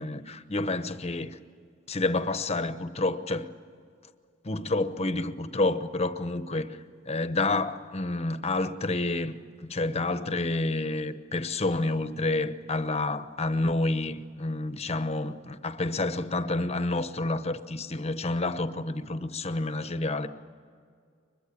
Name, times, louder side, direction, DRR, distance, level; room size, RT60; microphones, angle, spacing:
voice 1, 0.0-1.4 1.9-3.5 4.4-6.7 7.0-20.3, left 2 dB, 35° left, 0.9 m, -29 dB
24.5 x 22.0 x 8.6 m
head